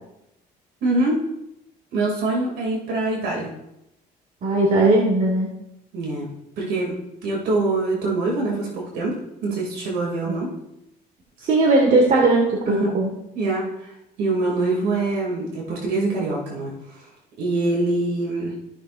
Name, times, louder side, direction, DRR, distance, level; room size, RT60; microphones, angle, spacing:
voice 1, 0.8-1.2 1.9-3.5 5.9-6.3 6.6-6.9 7.2-9.2 9.4-10.5 12.6-12.9 13.3-13.9 14.2-17.0 17.4-18.5, right 2 dB, 75° right, -2 dB, 2.7 m, -24 dB
voice 2, 4.4-5.5 10.3-10.4 11.4-13.1, right 2 dB, 50° right, -1 dB, 1.8 m, -18 dB
14.5 x 6.3 x 2.6 m, 0.86 s
cardioid pair, 110°, 17 cm